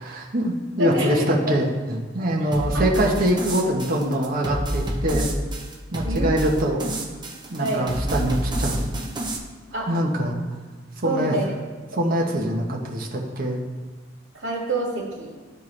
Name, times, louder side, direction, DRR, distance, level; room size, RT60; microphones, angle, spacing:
voice 1, 0.0-5.3 5.9-6.9 7.5-8.9 9.9-10.4 11.0-11.4 12.0-13.6, equal, 50° right, -1 dB, 1.1 m, -24 dB
voice 2, 0.8-1.6 2.7-2.9 3.6-3.7 6.0-6.6 7.6-7.9 9.7-9.9 11.0-11.5 14.3-15.4, right 2 dB, 75° right, -3 dB, 2.0 m, -27 dB
sound 1, 2.5-9.4, right 1 dB, 25° right, 0.9 m, -29 dB
12.0 x 4.5 x 3.3 m, 1.3 s
head